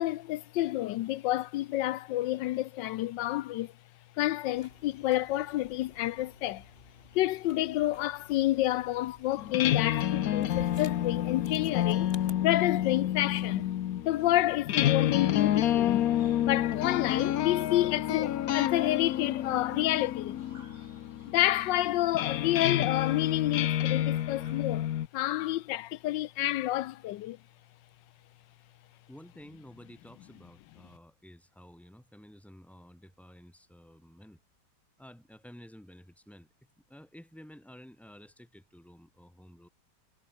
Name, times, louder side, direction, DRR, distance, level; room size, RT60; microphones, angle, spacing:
voice 1, 0.0-3.7 4.2-6.6 7.1-12.1 12.4-13.7 14.0-16.1 16.4-20.4 21.3-27.4, left 15 dB, 75° left, 1.2 m, -29 dB
sound 1, 4.6-12.3, left 2 dB, 30° left, 4.8 m, -54 dB
sound 2, 9.4-25.1, left 11 dB, 60° left, 1.1 m, -29 dB
sound 3, 15.1-25.5, right 2 dB, 30° right, 5.4 m, -63 dB
voice 2, 29.1-34.4 35.0-39.7, equal, ahead, 5.7 m, -52 dB
omnidirectional pair, 2.0 m